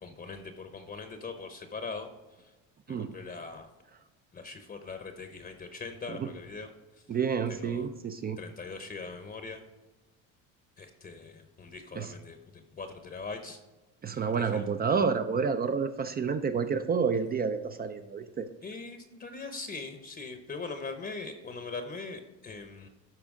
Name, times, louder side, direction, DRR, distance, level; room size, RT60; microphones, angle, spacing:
voice 1, 0.0-2.1 2.4-2.5 2.9-3.7 4.3-6.7 6.9-7.0 7.5-7.9 8.4-9.6 10.8-13.6 14.1-14.6 18.6-22.9, left 4 dB, 25° left, 7 dB, 0.8 m, -41 dB
voice 2, 7.1-8.4 11.9-12.1 14.0-18.5, right 5 dB, 25° right, 9 dB, 0.4 m, -29 dB
12.5 x 4.2 x 3.7 m, 1.2 s
supercardioid pair, 100°, 36 cm